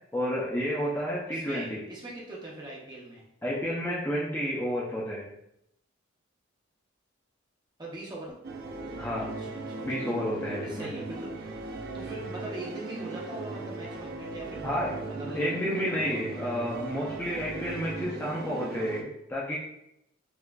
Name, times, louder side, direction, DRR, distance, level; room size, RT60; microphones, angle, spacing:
voice 1, 0.1-1.8 3.4-5.2 9.0-9.3 9.8-10.9 14.6-14.9 15.3-19.6, equal, 10° left, -6 dB, 0.4 m, -30 dB
voice 2, 1.2-3.2 7.8-8.3 9.1-9.7 10.6-11.3 11.9-15.8, right 2 dB, 20° right, -4 dB, 0.7 m, -41 dB
sound 1, 8.4-19.0, right 2 dB, 50° right, 0.4 m, -38 dB
4.5 x 2.4 x 2.3 m, 0.79 s
head